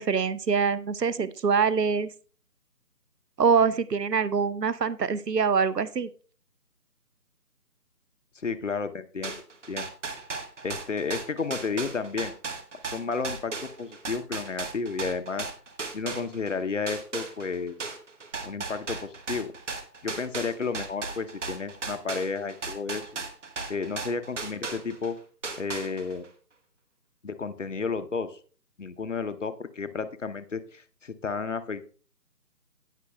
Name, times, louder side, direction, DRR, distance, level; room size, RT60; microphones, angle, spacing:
voice 1, 0.0-2.1 3.4-6.1, right 5 dB, 90° right, 17 dB, 0.8 m, -24 dB
voice 2, 8.4-9.4 9.7-9.9 10.6-12.3 12.9-15.5 15.9-17.9 18.4-19.5 20.0-23.1 23.7-25.2 25.6-26.2 27.2-28.4 28.8-31.9, left 4 dB, 50° left, 11 dB, 0.8 m, -32 dB
sound 1, 9.2-16.5 16.9-25.1 25.4-26.2, right 4 dB, 50° right, 1.4 m, -36 dB
17.5 x 6.0 x 2.2 m, 0.42 s
figure-of-eight pair, 160°, 48 cm